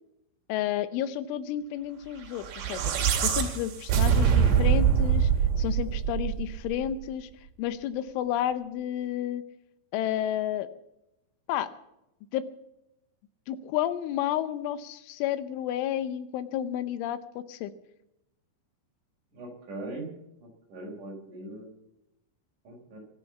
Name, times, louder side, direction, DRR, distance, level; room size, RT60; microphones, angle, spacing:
voice 1, 0.5-2.9 3.2-5.3 5.6-7.3 7.6-9.4 9.9-10.7 11.5-11.7 12.3-12.4 13.5-17.2 17.5-17.7, left 11 dB, 80° left, 13 dB, 3.2 m, -31 dB
sound 1, 2.4-6.8, right 8 dB, 65° right, 3.9 m, -24 dB
voice 2, 19.3-20.1 20.4-21.7 22.6-23.0, right 2 dB, 40° right, 0 dB, 5.8 m, -40 dB
24.0 x 8.2 x 7.1 m, 0.86 s
omnidirectional pair, 5.6 m